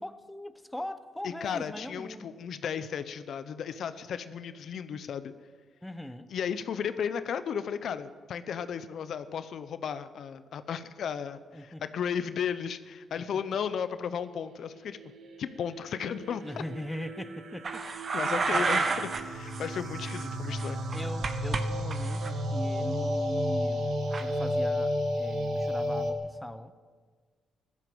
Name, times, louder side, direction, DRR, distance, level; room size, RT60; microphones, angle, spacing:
voice 1, 0.0-2.5 5.8-6.3 11.5-11.8 13.2-13.4 16.4-17.9 18.6-18.8 20.9-26.7, left 1 dB, 5° left, 11 dB, 1.0 m, -40 dB
voice 2, 1.2-5.3 6.3-15.0 15.4-16.4 18.1-20.8, left 7 dB, 70° left, 12 dB, 0.8 m, -34 dB
sound 1, 14.7-26.1, equal, 75° right, 1.8 m, -33 dB
sound 2, 17.6-19.2 19.5-19.7 20.0-21.6 21.9-22.3 24.1-24.2, right 4 dB, 45° right, 1.3 m, -30 dB
14.5 x 12.5 x 7.9 m, 1.5 s
cardioid pair, 85°, 0 cm